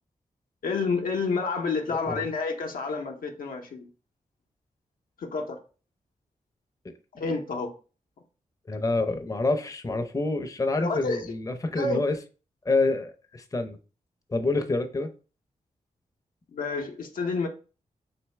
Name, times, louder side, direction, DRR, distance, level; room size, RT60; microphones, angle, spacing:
voice 1, 0.6-3.9 5.2-5.6 7.1-7.7 10.8-11.3 11.8-12.0 16.5-17.5, left 4 dB, 75° left, 0.7 m, -29 dB
voice 2, 8.7-12.2 12.6-13.8 14.3-15.1, left 2 dB, 25° left, 0.6 m, -27 dB
3.4 x 2.8 x 3.2 m
cardioid pair, 45°, 15 cm